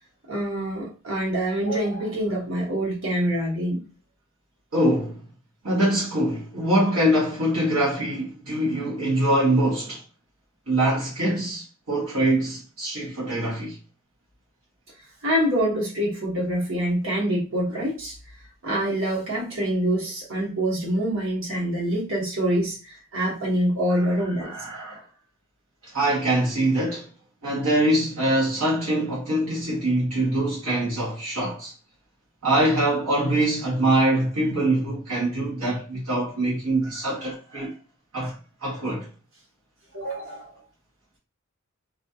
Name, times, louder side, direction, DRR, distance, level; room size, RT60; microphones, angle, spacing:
voice 1, 0.3-3.8 15.2-18.1 18.6-24.5 39.9-40.5, right 1 dB, 65° right, 1.1 m, -25 dB
voice 2, 4.7-5.2 5.6-10.0 10.7-13.8 24.4-25.0 25.8-27.1 27.4-31.7 32.4-37.7 38.1-39.1, right 1 dB, 85° right, 0.9 m, -24 dB
2.3 x 2.3 x 2.6 m
head